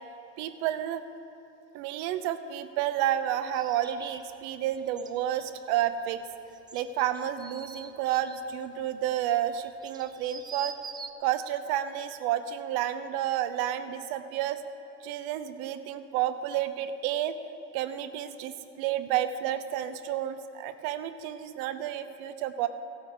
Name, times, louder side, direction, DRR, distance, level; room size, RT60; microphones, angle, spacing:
voice 1, 0.4-1.0 1.7-6.2 6.7-10.7 11.2-14.6 15.0-17.3 17.7-22.7, right 11 dB, 50° right, 11 dB, 0.9 m, -30 dB
sound 1, 3.5-11.1, right 5 dB, 10° right, 0.4 m, -46 dB
16.0 x 8.4 x 4.7 m, 3.0 s
hypercardioid pair, 95°, 48 cm